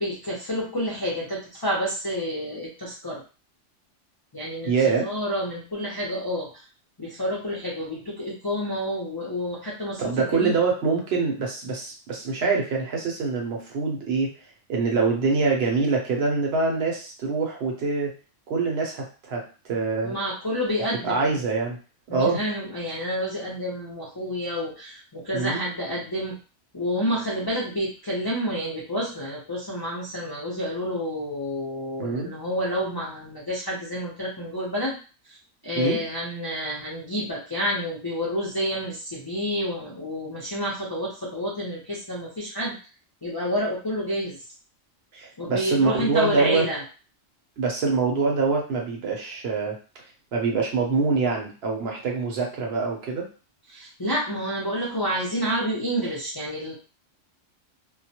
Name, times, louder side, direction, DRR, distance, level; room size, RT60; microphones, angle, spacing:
voice 1, 0.0-3.2 4.3-6.6 7.0-10.6 20.0-21.4 22.1-26.3 26.7-35.0 35.3-35.4 35.6-42.8 43.2-44.4 45.4-46.8 53.7-56.7, equal, 35° left, -6 dB, 0.3 m, -29 dB
voice 2, 4.7-5.1 10.0-14.3 14.7-18.1 18.5-20.1 21.0-21.8 22.1-22.4 25.3-25.6 32.0-32.3 35.7-36.0 45.1-46.6 47.6-49.8 50.3-53.3, right 4 dB, 65° right, 0 dB, 0.8 m, -25 dB
2.2 x 2.0 x 2.7 m, 0.35 s
omnidirectional pair, 1.3 m